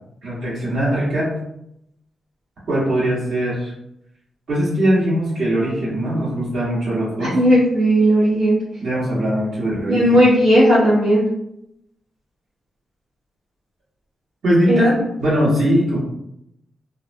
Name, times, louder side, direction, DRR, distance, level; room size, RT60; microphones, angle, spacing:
voice 1, 0.2-1.3 2.7-3.7 4.5-7.4 8.8-10.2 14.4-16.0, right 1 dB, 75° right, -7 dB, 1.4 m, -20 dB
voice 2, 7.2-8.6 9.9-11.2 14.7-15.0, equal, 90° right, -10 dB, 0.8 m, -15 dB
2.6 x 2.2 x 2.6 m, 0.80 s
cardioid pair, 85°, 0 cm